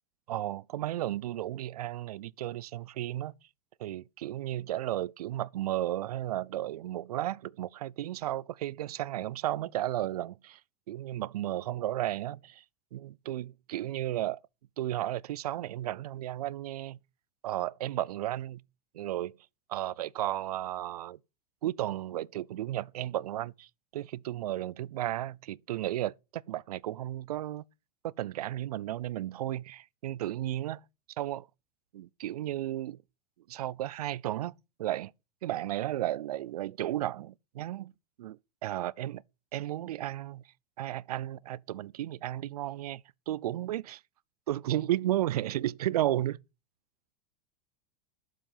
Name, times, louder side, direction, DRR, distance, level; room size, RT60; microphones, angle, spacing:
voice 1, 0.3-3.3 3.8-10.6 10.9-12.6 12.9-14.4 14.8-17.0 17.4-18.6 18.9-19.4 19.7-21.2 21.6-27.6 28.0-30.8 31.2-31.5 31.9-33.0 33.5-34.5 34.8-35.1 35.4-37.9 38.2-39.2 39.5-40.4 40.8-44.0 44.5-46.4, right 13 dB, 85° right, 0.5 m, -34 dB
11.5 x 7.5 x 5.4 m
hypercardioid pair, 110°, 19 cm